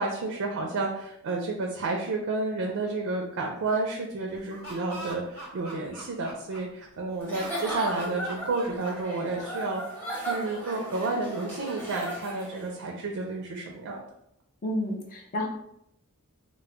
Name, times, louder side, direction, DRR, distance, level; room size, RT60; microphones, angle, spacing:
voice 1, 0.0-9.8 10.1-14.0, right 3 dB, 65° right, 1 dB, 0.4 m, -31 dB
Laughter, 4.3-6.8 7.3-9.3, right 1 dB, 90° left, 1.2 m, -42 dB
Giggle / Chuckle chortle, 7.2-12.7, right 1 dB, 10° left, 0.8 m, -36 dB
voice 2, 14.6-15.5, left 1 dB, 40° left, 0 dB, 0.4 m, -30 dB
2.1 x 2.0 x 3.7 m, 0.77 s
head